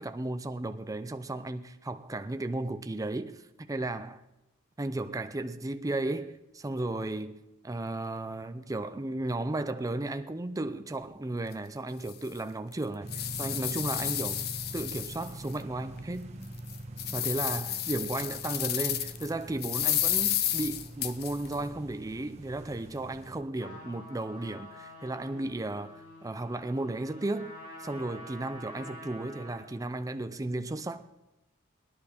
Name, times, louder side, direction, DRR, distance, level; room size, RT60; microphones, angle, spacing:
voice 1, 0.0-4.2 4.8-14.4 14.7-16.4 17.1-25.9 26.2-27.5 27.8-31.0, right 2 dB, 15° right, 0.5 m, -34 dB
sound 1, 11.5-11.6 12.1-12.2 12.7-15.5 16.0-16.1 16.6-19.3 19.6-21.6, left 11 dB, 50° left, 0.6 m, -31 dB
sound 2, 13.0-23.4, right 1 dB, 30° right, 1.2 m, -44 dB
Trumpet, 23.5-29.8, left 1 dB, 90° left, 5.6 m, -48 dB
19.5 x 10.5 x 4.3 m
head